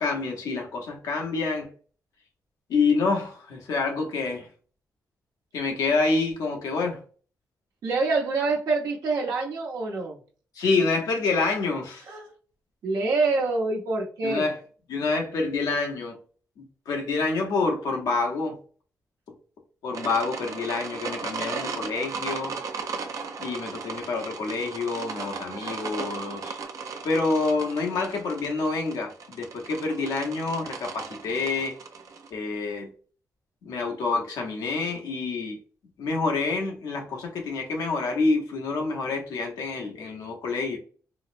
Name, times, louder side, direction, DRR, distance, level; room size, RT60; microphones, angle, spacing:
voice 1, 0.0-1.7 2.7-4.5 5.5-7.0 10.6-12.0 14.2-14.6 14.9-16.1 16.6-18.6 19.8-22.5 23.4-26.6 27.0-31.7 32.3-32.9 33.6-35.6 36.0-40.8, left 3 dB, 85° left, 0.8 m, -27 dB
voice 2, 7.8-10.2 12.1-12.3 12.8-14.5, right 3 dB, 80° right, 0.9 m, -26 dB
sound 1, 19.9-32.3, right 5 dB, 60° right, 0.5 m, -36 dB
3.9 x 2.0 x 2.5 m
cardioid pair, 95°, 6 cm